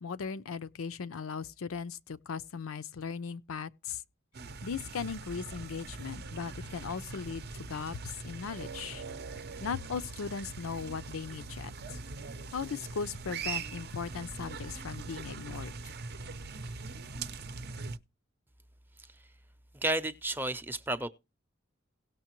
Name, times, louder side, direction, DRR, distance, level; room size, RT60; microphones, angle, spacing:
voice 1, 0.0-4.0 4.6-9.0 9.6-12.0 12.5-15.7, left 6 dB, 85° left, 0.5 m, -38 dB
sound 1, 4.3-18.0, right 4 dB, 50° right, 0.6 m, -42 dB
voice 2, 19.7-21.1, right 1 dB, 10° right, 0.6 m, -32 dB
17.5 x 6.4 x 3.0 m
head